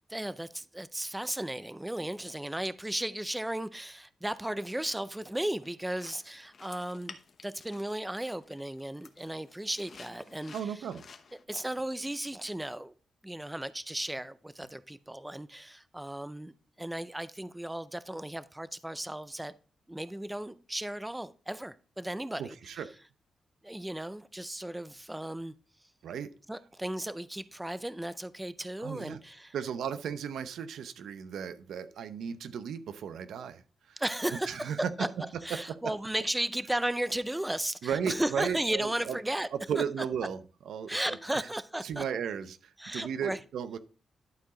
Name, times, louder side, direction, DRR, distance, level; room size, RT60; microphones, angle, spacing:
voice 1, 0.1-7.2 7.4-10.7 11.5-12.9 13.2-19.5 19.9-22.6 23.6-25.5 26.5-29.5 34.0-35.1 35.4-39.5 39.8-39.9 40.9-42.0 42.8-43.4, right 1 dB, 10° right, 0.4 m, -35 dB
sound 1, 5.6-11.4, left 5 dB, 50° left, 0.9 m, -53 dB
voice 2, 10.5-11.0 22.4-22.9 26.0-26.3 28.8-29.2 29.5-33.6 33.9-34.0 34.3-35.2 35.5-35.9 37.8-39.2 39.5-40.4 40.7-41.0 41.4-41.5 41.8-43.8, right 7 dB, 90° right, 0.7 m, -35 dB
11.5 x 4.7 x 3.8 m
cardioid pair, 120°, 0 cm